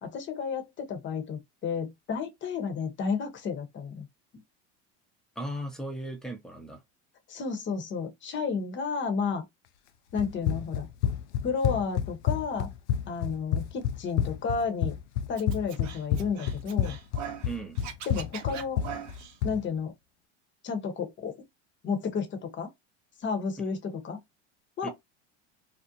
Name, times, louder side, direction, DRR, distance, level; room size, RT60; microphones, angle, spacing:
voice 1, 0.0-4.1 7.3-9.4 10.1-10.9 11.4-12.7 13.1-15.0 15.3-17.0 18.1-18.8 19.4-19.9 20.6-21.4 21.8-22.7 23.2-24.2 24.8-24.9, left 5 dB, 30° left, 0.9 m, -32 dB
voice 2, 5.4-6.8 17.4-17.8 24.8-24.9, right 1 dB, ahead, 0.7 m, -36 dB
Run, 10.2-19.6, left 9 dB, 75° left, 0.5 m, -29 dB
Scratching (performance technique), 15.4-17.5 17.8-19.4, right 9 dB, 50° right, 0.8 m, -41 dB
2.5 x 2.1 x 2.7 m
hypercardioid pair, 95°, 35 cm